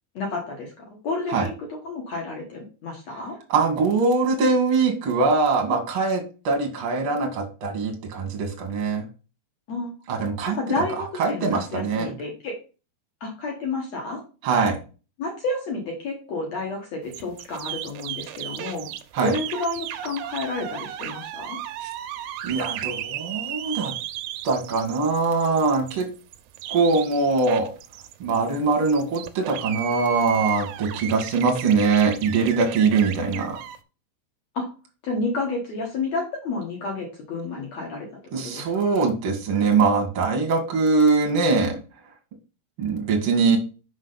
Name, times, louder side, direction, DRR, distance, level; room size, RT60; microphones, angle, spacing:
voice 1, 0.2-1.5 1.8-3.4 9.7-9.9 10.6-12.6 13.2-14.2 15.2-18.9 19.2-21.6 34.5-34.7 35.0-38.1 38.4-38.7, left 3 dB, 60° left, 0 dB, 1.9 m, -30 dB
voice 2, 3.5-9.0 10.1-10.6 11.2-12.1 14.4-14.8 19.1-19.3 21.8-21.9 22.4-23.9 24.4-26.1 26.7-27.7 28.2-33.6 38.3-41.8 42.8-43.6, right 4 dB, 55° right, 3 dB, 1.5 m, -22 dB
sound 1, 17.1-33.8, right 11 dB, 85° right, 2.8 m, -35 dB
6.5 x 6.1 x 4.0 m, 0.34 s
omnidirectional pair, 5.1 m